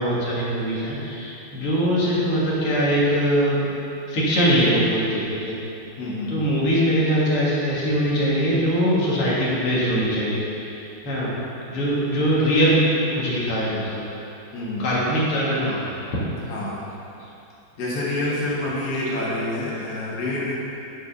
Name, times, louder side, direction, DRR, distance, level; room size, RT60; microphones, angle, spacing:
voice 1, 0.0-3.6 4.1-5.5 6.3-11.3 11.7-12.8 13.1-14.0 14.8-15.9, equal, 90° left, -7 dB, 2.5 m, -22 dB
voice 2, 6.0-6.3 14.5-14.9 16.5-16.9 17.8-20.6, left 1 dB, 50° left, -7 dB, 2.0 m, -27 dB
9.4 x 4.6 x 5.2 m, 2.8 s
omnidirectional pair, 2.4 m